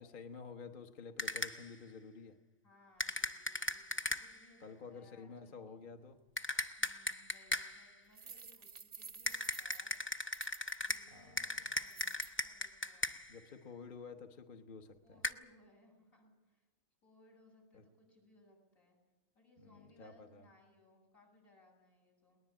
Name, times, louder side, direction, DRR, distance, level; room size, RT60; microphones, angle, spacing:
voice 1, 0.0-2.4 4.6-6.2 11.1-11.6 13.3-15.2 17.7-17.8 19.6-20.5, left 5 dB, 40° left, 6 dB, 1.2 m, -51 dB
sound 1, 1.2-1.7 3.0-4.5 6.4-7.9 9.3-13.4 15.2-15.3, left 1 dB, 15° left, 0.5 m, -38 dB
voice 2, 2.6-5.8 6.8-10.2 10.8-13.1 15.0-16.7 17.0-19.0 19.3-22.4, left 1 dB, 80° left, -1 dB, 8.4 m, -66 dB
sound 2, 8.1-11.0 11.8-12.3, right 5 dB, 35° right, 0.8 m, -51 dB
21.0 x 19.5 x 8.5 m, 1.1 s
omnidirectional pair, 1.4 m